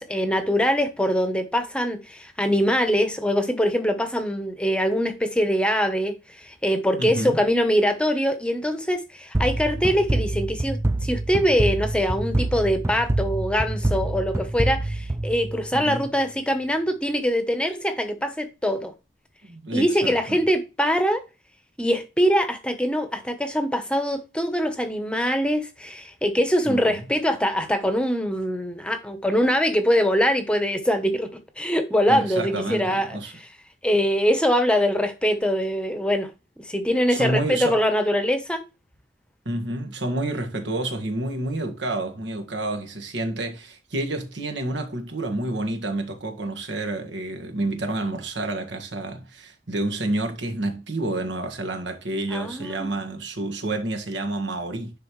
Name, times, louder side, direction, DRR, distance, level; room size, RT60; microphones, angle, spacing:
voice 1, 0.0-18.9 19.7-21.2 21.8-31.3 31.6-33.5 33.8-36.3 36.6-38.6 52.3-52.9, equal, 5° left, 0.8 m, -23 dB
voice 2, 7.0-7.4 15.7-16.1 19.4-20.4 26.7-27.1 32.1-33.3 37.1-37.8 39.4-54.9, right 2 dB, 85° right, 1.6 m, -29 dB
sound 1, 9.3-16.0, right 2 dB, 15° right, 0.3 m, -26 dB
10.0 x 4.0 x 3.1 m
head